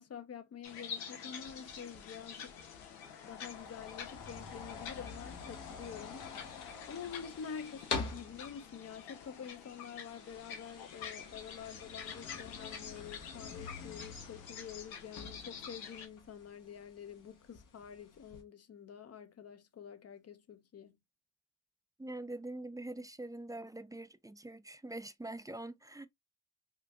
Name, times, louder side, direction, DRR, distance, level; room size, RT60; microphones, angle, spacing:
voice 1, 0.0-2.5 3.2-21.0, left 7 dB, 45° left, 0.7 m, -48 dB
sound 1, 0.6-16.1, left 7 dB, 85° left, 0.7 m, -48 dB
sound 2, 1.4-18.4, left 5 dB, 60° left, 1.0 m, -48 dB
voice 2, 22.0-26.1, right 2 dB, 10° right, 0.4 m, -44 dB
3.8 x 2.5 x 2.3 m
hypercardioid pair, 40°, 35 cm